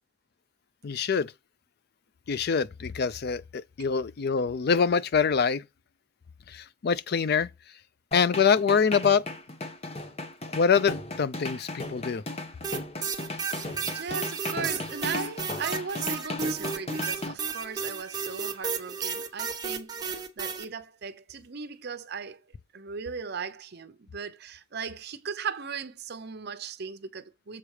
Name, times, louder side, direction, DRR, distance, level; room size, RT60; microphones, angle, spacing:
voice 1, 0.8-1.3 2.3-5.6 6.5-7.5 8.1-9.2 10.5-12.2, left 6 dB, 55° left, 0.4 m, -25 dB
sound 1, 8.1-17.3, left 2 dB, 30° left, 1.0 m, -36 dB
sound 2, 12.6-20.6, right 6 dB, 20° right, 0.9 m, -33 dB
voice 2, 13.6-22.4 22.7-27.6, right 6 dB, 55° right, 0.7 m, -37 dB
7.2 x 4.9 x 4.8 m
head